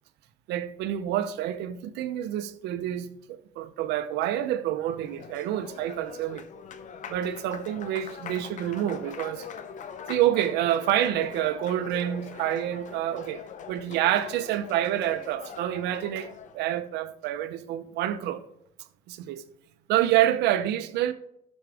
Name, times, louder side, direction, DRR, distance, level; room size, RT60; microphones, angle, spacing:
voice 1, 0.5-3.1 3.6-6.4 7.1-9.4 10.1-16.3 16.5-18.4 19.1-19.4 19.9-21.1, right 12 dB, 85° right, 0.8 m, -27 dB
Applause, 4.8-16.6, left 7 dB, 45° left, 0.7 m, -42 dB
13.0 x 6.4 x 3.5 m
cardioid pair, 110°, 17 cm